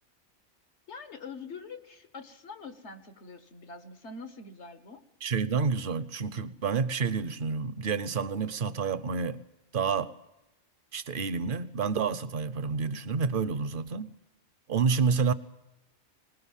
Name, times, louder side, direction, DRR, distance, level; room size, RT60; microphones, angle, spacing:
voice 1, 0.9-5.0, left 4 dB, 75° left, 1.7 m, -44 dB
voice 2, 5.2-9.4 9.7-10.1 10.9-14.1 14.7-15.3, right 5 dB, 50° right, 1.0 m, -29 dB
20.0 x 20.0 x 7.4 m
omnidirectional pair, 1.2 m